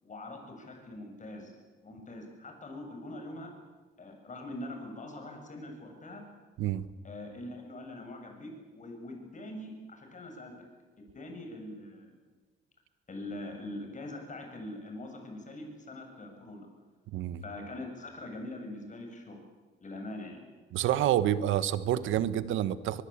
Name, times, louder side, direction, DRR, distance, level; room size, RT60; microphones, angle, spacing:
voice 1, 0.0-1.5 1.8-3.5 4.0-6.2 7.0-10.5 11.0-12.2 13.1-16.7 17.4-19.4 19.8-20.4, left 1 dB, 40° left, 3 dB, 7.0 m, -43 dB
voice 2, 20.7-23.0, right 12 dB, 85° right, 15 dB, 1.2 m, -28 dB
22.5 x 22.5 x 8.7 m, 1.4 s
cardioid pair, 90°, 20 cm